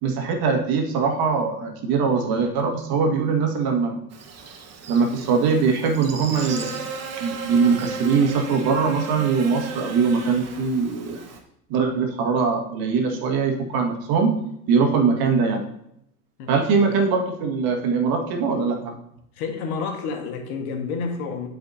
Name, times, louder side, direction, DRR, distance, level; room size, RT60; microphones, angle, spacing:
voice 1, 0.0-4.0 4.9-6.9 7.2-11.3 11.7-14.3 14.7-15.6 16.5-18.9, right 5 dB, 55° right, 2 dB, 1.8 m, -22 dB
Buzz, 4.1-11.4, right 5 dB, 35° right, 1.4 m, -36 dB
voice 2, 19.3-21.5, left 5 dB, 70° left, 4 dB, 1.6 m, -29 dB
11.0 x 5.2 x 2.8 m, 0.76 s
hypercardioid pair, 95°, 45 cm